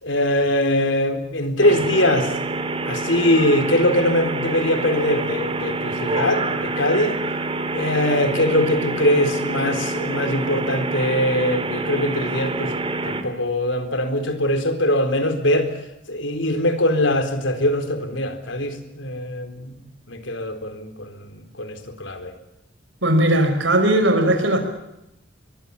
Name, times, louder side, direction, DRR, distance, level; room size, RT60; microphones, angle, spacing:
voice 1, 0.0-2.3 2.9-7.1 7.7-12.7 13.0-15.7 16.1-19.8 20.1-22.3, left 1 dB, 75° left, 8 dB, 4.1 m, -22 dB
sound 1, 1.6-13.2, right 2 dB, 30° right, 2.6 m, -27 dB
voice 2, 23.0-24.6, right 1 dB, 80° right, 6 dB, 5.5 m, -18 dB
24.0 x 23.0 x 7.2 m, 0.87 s
head